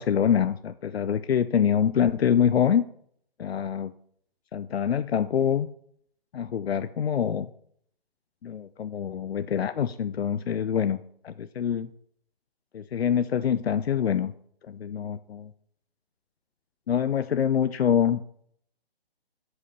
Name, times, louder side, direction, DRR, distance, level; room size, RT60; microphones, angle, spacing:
voice 1, 0.0-2.8 3.4-3.9 4.5-5.7 6.3-7.5 8.4-11.0 11.2-11.9 12.7-14.3 14.7-15.5 16.9-18.2, left 8 dB, 80° left, 12 dB, 0.6 m, -25 dB
8.1 x 5.6 x 6.6 m, 0.66 s
hypercardioid pair, 165°, 30 cm